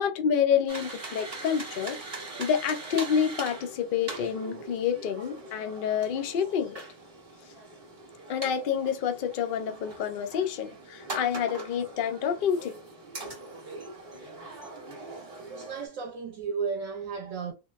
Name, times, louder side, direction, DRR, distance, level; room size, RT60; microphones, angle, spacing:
voice 1, 0.0-6.8 8.3-12.8, left 8 dB, 85° left, 0.4 m, -28 dB
sound 1, 0.7-15.9, right 2 dB, 35° right, 0.7 m, -42 dB
voice 2, 15.4-17.5, right 5 dB, 70° right, 1.0 m, -34 dB
3.7 x 2.0 x 2.3 m
omnidirectional pair, 1.5 m